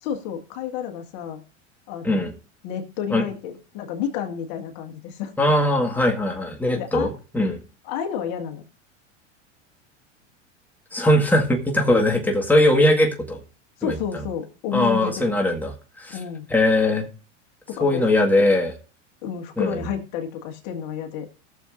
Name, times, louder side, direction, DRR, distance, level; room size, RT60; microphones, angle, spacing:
voice 1, 0.0-1.4 1.9-2.2 2.6-5.3 6.7-7.1 7.8-8.6 13.8-15.3 16.1-16.5 17.7-18.1 19.2-21.3, left 8 dB, 55° left, 5 dB, 1.8 m, -30 dB
voice 2, 5.4-7.6 10.9-13.4 13.8-14.2 14.7-16.2 16.5-17.1 17.8-18.7 19.6-19.8, left 1 dB, 5° left, 1 dB, 1.8 m, -20 dB
19.0 x 7.0 x 2.6 m, 0.36 s
hypercardioid pair, 95°, 37 cm